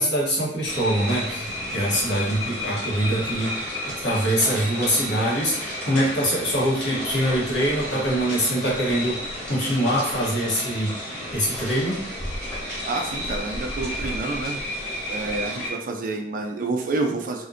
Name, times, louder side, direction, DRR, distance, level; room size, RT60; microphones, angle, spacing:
voice 1, 0.0-1.5 1.7-3.7 4.0-12.0, equal, 70° left, -4 dB, 0.9 m, -24 dB
sound 1, 0.7-15.7, equal, 5° left, 1.2 m, -32 dB
voice 2, 12.9-14.6 15.1-17.5, right 3 dB, 50° right, 3 dB, 0.3 m, -28 dB
2.5 x 2.1 x 2.4 m, 0.72 s
head